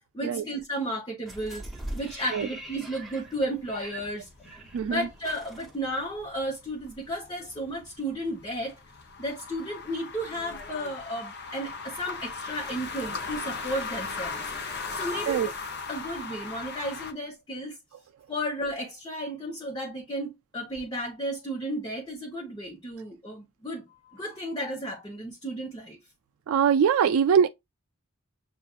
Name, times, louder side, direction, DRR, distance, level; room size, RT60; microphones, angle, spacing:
voice 1, 0.1-1.6 1.9-4.3 4.9-8.8 9.2-14.4 14.9-15.5 15.9-17.8 18.3-26.0, equal, 20° left, 0.9 m, -33 dB
sound 1, 1.2-6.5 6.8-6.9, right 1 dB, ahead, 1.3 m, -42 dB
sound 2, 2.3-17.1, left 4 dB, 50° left, 0.8 m, -38 dB
voice 2, 4.7-5.1 15.3-15.5 26.5-27.5, right 7 dB, 80° right, 0.3 m, -22 dB
7.2 x 2.4 x 2.4 m
head